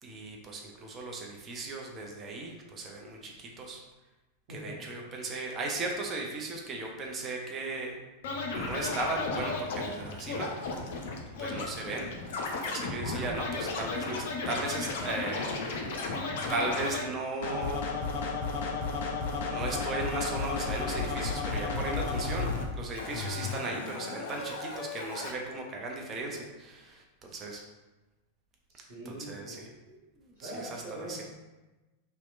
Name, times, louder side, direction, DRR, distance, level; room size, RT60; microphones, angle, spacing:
voice 1, 0.0-3.8 4.5-8.0 8.5-10.8 11.4-12.2 12.5-15.6 16.5-17.8 19.4-27.6 29.1-31.2, right 2 dB, 25° right, 0 dB, 0.4 m, -37 dB
voice 2, 4.5-4.9 28.7-29.6 30.4-31.2, right 1 dB, 50° right, -12 dB, 0.9 m, -42 dB
Scratching (performance technique), 8.2-17.0 17.4-22.6 22.9-25.3, left 3 dB, 55° left, 0.3 m, -34 dB
2.7 x 2.1 x 2.3 m, 1.1 s
figure-of-eight pair, 90°, 0 cm